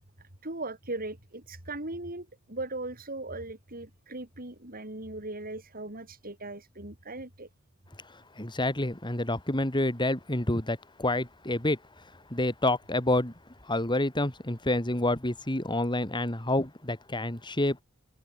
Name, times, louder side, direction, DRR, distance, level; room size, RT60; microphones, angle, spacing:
voice 1, 0.4-7.5, right 2 dB, 45° right, 7.4 m, -38 dB
voice 2, 8.1-11.8 12.3-13.3 13.6-17.8, left 1 dB, 20° left, 3.3 m, -28 dB
head